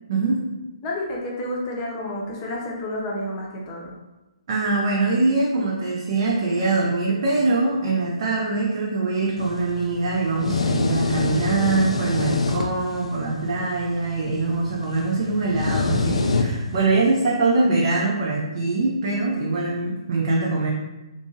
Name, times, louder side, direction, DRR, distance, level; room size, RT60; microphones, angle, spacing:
voice 1, 0.1-0.4 4.5-20.7, right 3 dB, 45° right, -3 dB, 0.5 m, -23 dB
voice 2, 0.8-4.0, left 1 dB, 25° left, -2 dB, 0.7 m, -30 dB
sound 1, 9.4-16.9, left 3 dB, 75° left, 0.4 m, -27 dB
2.6 x 2.5 x 2.7 m, 1.1 s
figure-of-eight pair, 130°, 3 cm